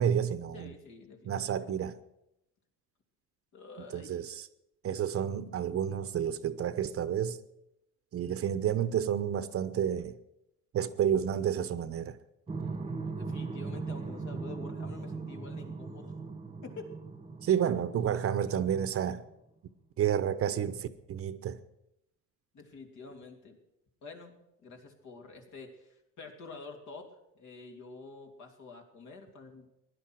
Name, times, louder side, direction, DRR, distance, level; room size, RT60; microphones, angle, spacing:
voice 1, 0.0-0.7 1.2-2.0 3.9-4.5 4.8-7.4 8.1-10.1 10.7-12.2 17.4-19.2 20.0-21.6, right 9 dB, 45° right, 0.9 m, -30 dB
voice 2, 0.5-1.7 3.5-4.2 13.1-16.2 16.6-16.9 22.5-23.6 24.0-29.7, left 3 dB, 60° left, 2.9 m, -48 dB
sound 1, 12.5-19.0, right 4 dB, 15° right, 1.1 m, -39 dB
16.5 x 11.0 x 6.3 m
cardioid pair, 110°, 33 cm